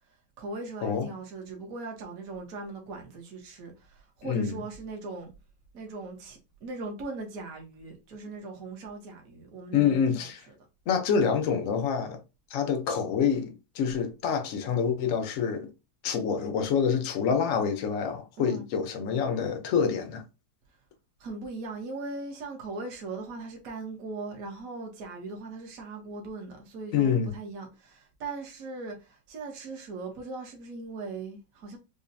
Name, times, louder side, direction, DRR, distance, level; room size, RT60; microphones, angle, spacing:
voice 1, 0.4-5.3 5.7-10.5 18.4-18.6 21.2-31.8, right 3 dB, 50° right, 1.3 m, -39 dB
voice 2, 4.2-4.6 9.7-10.4 10.9-12.2 12.5-15.7 16.0-20.2 26.9-27.3, left 7 dB, 60° left, 0.8 m, -27 dB
5.3 x 2.3 x 2.6 m
omnidirectional pair, 2.2 m